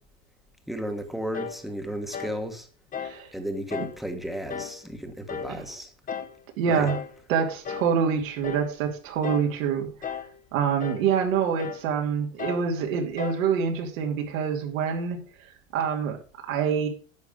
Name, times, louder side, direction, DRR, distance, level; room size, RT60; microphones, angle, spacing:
voice 1, 0.7-2.7 3.3-5.9 6.6-6.9, equal, ahead, 1.4 m, -34 dB
sound 1, 1.3-1.6 2.1-2.4 2.9-3.2 3.7-4.0 4.5-4.8 5.3-5.6 6.1-6.4 6.9-7.2 7.6-8.0 8.4-8.7 9.2-9.6 10.0-10.4 10.8-11.1 11.6-11.9 12.4-12.7 13.2-13.5, left 7 dB, 20° left, 1.0 m, -35 dB
voice 2, 3.0-3.3 5.5-5.6 6.6-7.0 7.3-10.2 10.5-15.2 15.7-16.2 16.5-16.9, right 7 dB, 70° right, 2.8 m, -26 dB
10.5 x 6.7 x 5.2 m
supercardioid pair, 135°, 41 cm